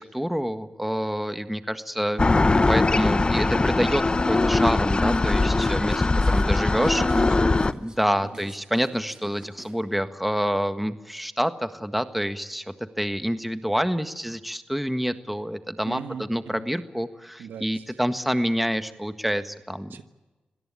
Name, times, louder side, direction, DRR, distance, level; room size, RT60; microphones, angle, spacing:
voice 1, 0.0-2.2 2.7-7.0 7.8-20.0, equal, 5° right, 9 dB, 1.6 m, -27 dB
sound 1, 2.2-7.7, left 3 dB, 30° left, 0.9 m, -21 dB
sound 2, 5.0-9.9, right 2 dB, 25° right, 6.2 m, -48 dB
voice 2, 6.6-7.9 15.8-16.6 17.4-17.8 19.9-20.0, right 7 dB, 85° right, 9 dB, 1.4 m, -38 dB
26.5 x 17.0 x 8.4 m, 1.1 s
cardioid pair, 55°, 3 cm